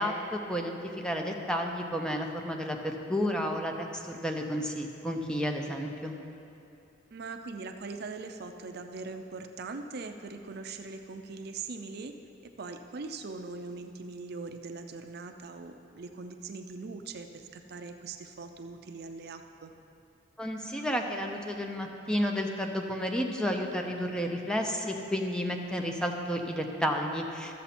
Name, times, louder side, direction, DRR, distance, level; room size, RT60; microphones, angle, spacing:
voice 1, 0.0-6.1 20.4-27.5, equal, 5° left, 2 dB, 0.7 m, -31 dB
voice 2, 7.1-12.1 12.4-19.7, right 4 dB, 55° right, 6 dB, 0.5 m, -41 dB
14.0 x 6.9 x 4.2 m, 2.7 s
head